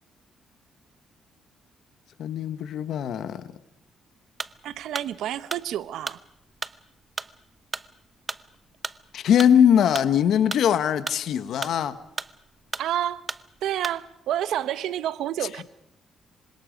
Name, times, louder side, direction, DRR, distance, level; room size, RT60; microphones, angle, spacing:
voice 1, 2.2-3.5 9.1-12.0, left 9 dB, 70° left, 1.3 m, -21 dB
sound 1, 4.4-14.2, right 3 dB, 30° right, 0.8 m, -36 dB
voice 2, 4.6-6.2 12.8-13.2 13.6-15.6, right 11 dB, 80° right, 1.0 m, -29 dB
26.0 x 25.5 x 5.2 m
cardioid pair, 90°, 0 cm